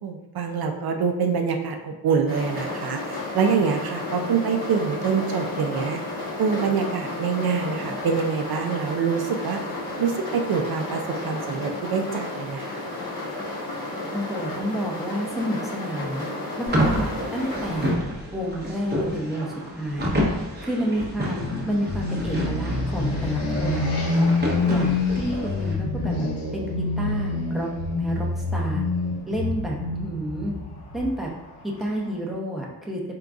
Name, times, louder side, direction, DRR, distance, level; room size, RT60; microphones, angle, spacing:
voice 1, 0.0-6.0 6.4-9.7 10.0-12.8, right 6 dB, 70° right, 4 dB, 0.5 m, -25 dB
sound 1, 2.3-17.9, left 2 dB, 55° left, 1.3 m, -32 dB
voice 2, 14.1-16.3 16.6-17.9 18.3-20.2 20.6-24.3 24.7-27.7 28.0-28.8 29.3-30.5 30.9-31.3 31.6-33.1, equal, ahead, -3 dB, 0.7 m, -30 dB
sound 2, 16.7-25.7, equal, 25° right, 0.8 m, -29 dB
sound 3, 21.4-32.1, left 3 dB, 90° left, 0.8 m, -26 dB
3.8 x 3.7 x 2.3 m, 1.0 s
wide cardioid pair, 110°, 39 cm